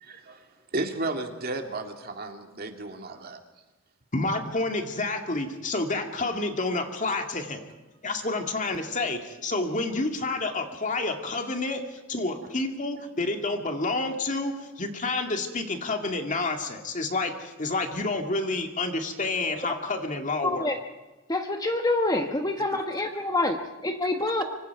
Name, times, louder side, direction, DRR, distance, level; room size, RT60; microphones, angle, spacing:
voice 1, 0.0-3.4, right 2 dB, 50° right, 4 dB, 2.3 m, -34 dB
voice 2, 4.1-7.6 8.0-20.7, left 2 dB, 40° left, 4 dB, 2.2 m, -29 dB
voice 3, 20.4-20.8 21.3-24.4, left 2 dB, 20° left, 5 dB, 1.2 m, -26 dB
25.5 x 25.0 x 4.8 m, 1.2 s
head